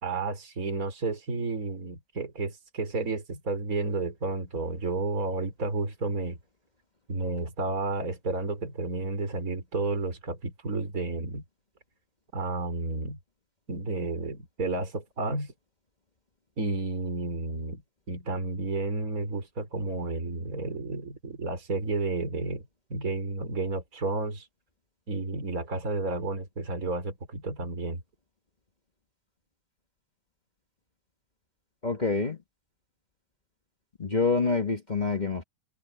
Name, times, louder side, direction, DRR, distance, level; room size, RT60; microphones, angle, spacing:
voice 1, 0.0-6.4 7.1-11.4 12.3-13.2 13.7-15.5 16.6-17.8 18.1-24.5 25.1-28.0, right 3 dB, 40° right, 4.5 m, -31 dB
voice 2, 31.8-32.4 34.0-35.4, left 4 dB, 25° left, 1.2 m, -26 dB
omnidirectional pair, 2.4 m